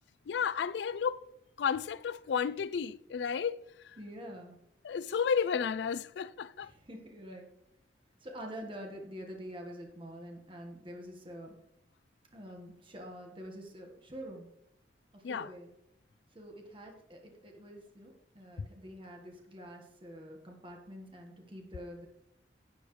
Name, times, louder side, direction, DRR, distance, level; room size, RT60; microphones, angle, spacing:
voice 1, 0.3-1.2 1.6-3.6 4.8-6.7 15.2-15.5 18.6-18.7, left 6 dB, 70° left, 0.4 m, -32 dB
voice 2, 4.0-4.6 6.6-7.5 8.2-11.5 12.3-14.5 15.1-15.7 16.3-22.1, equal, 30° right, 1.6 m, -46 dB
11.0 x 9.4 x 3.3 m
head